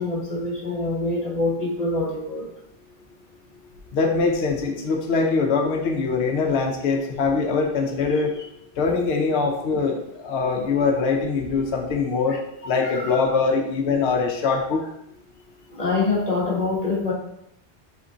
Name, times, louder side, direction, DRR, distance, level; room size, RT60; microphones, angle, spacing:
voice 1, 0.0-2.5 12.3-12.4 12.9-13.2 15.7-17.1, left 3 dB, 35° left, -4 dB, 1.1 m, -25 dB
voice 2, 3.9-8.3 8.8-12.4 12.7-14.8, left 4 dB, 70° left, 2 dB, 0.8 m, -23 dB
5.1 x 3.6 x 2.7 m, 0.77 s
omnidirectional pair, 1.1 m